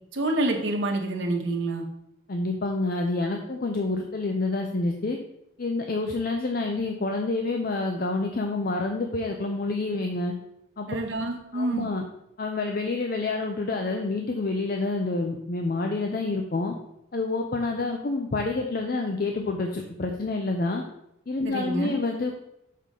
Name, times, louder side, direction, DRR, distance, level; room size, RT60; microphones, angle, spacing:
voice 1, 0.1-1.8 10.9-11.9 21.4-22.0, right 1 dB, 70° right, 1 dB, 1.1 m, -27 dB
voice 2, 2.3-5.2 5.6-10.3 10.8-10.9 11.5-12.0 12.4-16.7 17.1-20.8 21.3-22.3, left 3 dB, 45° left, 3 dB, 0.5 m, -28 dB
6.5 x 5.4 x 3.7 m, 0.82 s
head